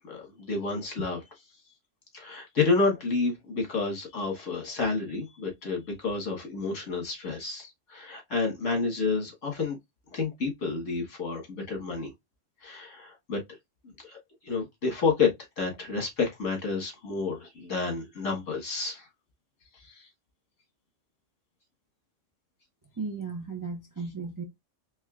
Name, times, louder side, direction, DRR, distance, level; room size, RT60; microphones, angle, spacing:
voice 1, 0.0-1.2 2.1-9.8 10.1-12.1 12.6-13.4 14.0-14.2 14.4-19.1 19.8-20.1, left 4 dB, 75° left, 1.9 m, -30 dB
voice 2, 23.0-24.4, right 4 dB, 25° right, 0.5 m, -35 dB
4.3 x 3.2 x 2.4 m
omnidirectional pair, 1.3 m